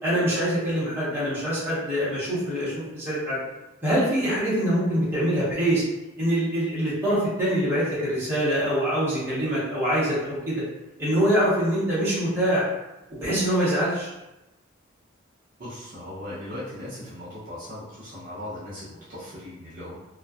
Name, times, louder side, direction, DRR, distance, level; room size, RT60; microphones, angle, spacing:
voice 1, 0.0-3.4 3.8-5.8 6.2-10.6 11.0-12.7 13.1-14.1, equal, 10° right, -10 dB, 1.0 m, -24 dB
voice 2, 15.6-20.0, left 1 dB, 45° right, -9 dB, 0.6 m, -38 dB
2.4 x 2.2 x 2.3 m, 0.97 s
head